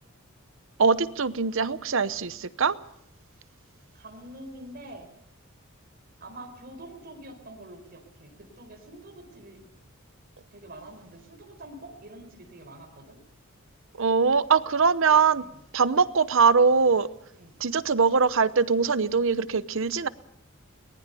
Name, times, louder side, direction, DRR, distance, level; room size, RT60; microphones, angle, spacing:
voice 1, 0.8-2.8 14.0-15.4 15.7-17.1 17.6-20.1, right 5 dB, 65° right, 15 dB, 0.8 m, -22 dB
voice 2, 3.9-5.1 6.2-9.6 10.5-13.2 15.3-15.6 17.3-17.6, right 1 dB, 45° right, 3 dB, 4.6 m, -45 dB
22.5 x 19.5 x 7.0 m, 0.75 s
head